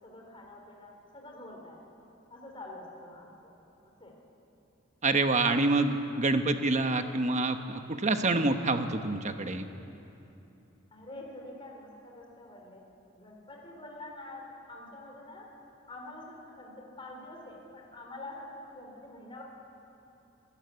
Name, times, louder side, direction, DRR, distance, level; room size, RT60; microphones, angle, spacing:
voice 1, 0.0-1.8 2.3-3.5 4.0-4.2 10.9-12.8 13.2-14.4 14.7-15.5 15.9-19.4, left 2 dB, 25° left, 0 dB, 3.6 m, -46 dB
voice 2, 5.0-9.7, right 2 dB, 35° right, 7 dB, 1.2 m, -27 dB
25.0 x 15.0 x 9.5 m, 2.9 s
head